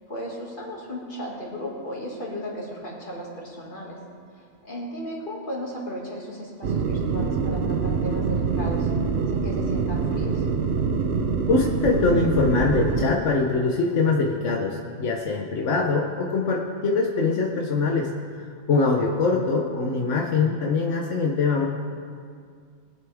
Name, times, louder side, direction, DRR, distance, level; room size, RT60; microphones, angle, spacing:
voice 1, 0.1-4.0 4.3-8.9 9.3-10.4, equal, 45° left, -3 dB, 2.5 m, -35 dB
sound 1, 6.6-13.1, right 5 dB, 65° right, 1.0 m, -25 dB
voice 2, 11.5-18.1 18.4-21.7, left 4 dB, 85° left, 0 dB, 1.3 m, -23 dB
21.0 x 8.0 x 3.5 m, 2.1 s
omnidirectional pair, 1.2 m